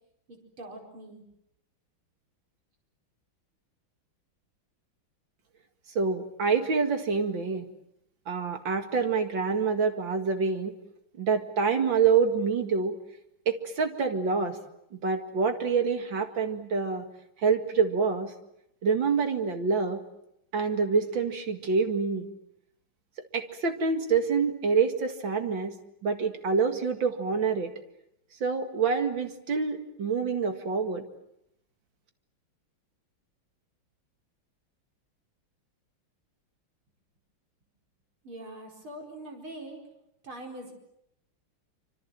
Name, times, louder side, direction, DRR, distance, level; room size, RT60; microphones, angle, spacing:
voice 1, 0.3-1.2 38.2-39.8 40.2-40.7, right 1 dB, 90° right, 2 dB, 5.7 m, -43 dB
voice 2, 5.9-7.7 8.3-10.7 11.2-12.9 13.5-14.6 14.9-17.1 17.4-18.3 18.8-20.0 20.5-22.3 23.3-25.7 26.0-27.7 28.4-31.0, right 5 dB, 65° right, 6 dB, 2.7 m, -26 dB
26.5 x 26.0 x 7.6 m, 0.80 s
omnidirectional pair, 2.2 m